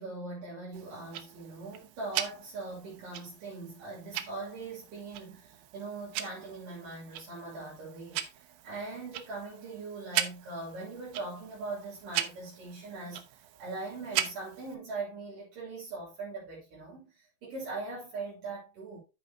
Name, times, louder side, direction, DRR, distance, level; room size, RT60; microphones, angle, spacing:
voice 1, 0.0-8.2 8.6-19.0, right 3 dB, 60° right, 4.3 m, -41 dB
Tick-tock, 0.7-14.7, right 12 dB, 80° right, 2.4 m, -39 dB
13.0 x 5.1 x 2.8 m
omnidirectional pair, 4.4 m